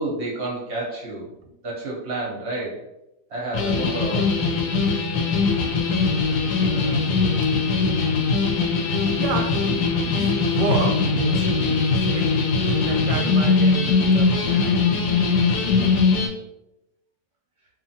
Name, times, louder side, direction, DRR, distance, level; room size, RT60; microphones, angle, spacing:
voice 1, 0.0-1.3 1.6-2.8 3.3-5.0, right 2 dB, 55° right, -4 dB, 0.8 m, -30 dB
sound 1, 3.5-16.3, left 4 dB, 75° left, 1.0 m, -21 dB
voice 2, 6.5-7.1 9.1-14.8, right 4 dB, 90° right, 4 dB, 1.2 m, -30 dB
2.8 x 2.4 x 2.7 m, 0.89 s
omnidirectional pair, 1.8 m